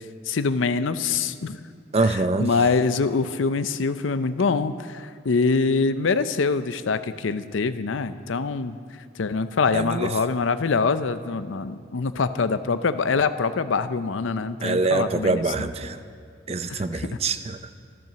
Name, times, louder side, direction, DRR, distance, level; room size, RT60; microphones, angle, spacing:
voice 1, 0.3-1.6 2.0-8.8 9.2-15.7 16.7-17.0, left 4 dB, 75° left, 12 dB, 0.5 m, -24 dB
voice 2, 1.9-2.5 9.7-10.1 14.6-16.0 16.5-17.8, right 3 dB, 30° right, 10 dB, 0.5 m, -24 dB
13.5 x 12.0 x 6.9 m, 2.2 s
head